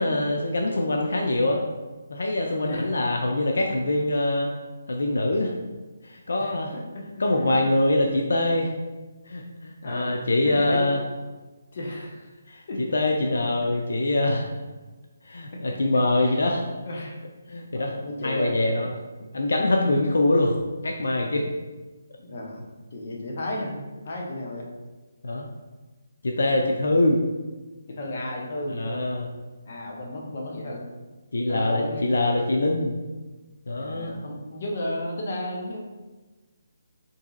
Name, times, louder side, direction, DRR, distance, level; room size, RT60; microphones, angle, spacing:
voice 1, 0.0-1.6 2.1-4.6 4.9-5.5 6.0-6.7 7.2-8.7 9.3-11.0 12.5-12.6 12.9-14.5 15.3-16.6 17.5-17.9 18.2-18.9 19.3-20.6 20.8-21.5 25.2-25.5 26.2-27.2 28.7-29.3 31.3-33.0 33.7-34.2, left 2 dB, 75° left, 1 dB, 0.4 m, -24 dB
voice 2, 2.6-2.9 6.4-7.7 9.8-10.9 11.7-12.3 12.7-12.8 15.5-15.6 16.2-16.4 16.9-17.2 17.7-18.9 22.2-22.6 22.9-23.8 24.0-24.7 26.5-26.7 27.9-29.1 29.7-30.8 31.5-32.1 33.8-35.8, left 1 dB, 45° left, -1 dB, 0.7 m, -33 dB
2.9 x 2.7 x 3.6 m, 1.2 s
hypercardioid pair, 170°, 0 cm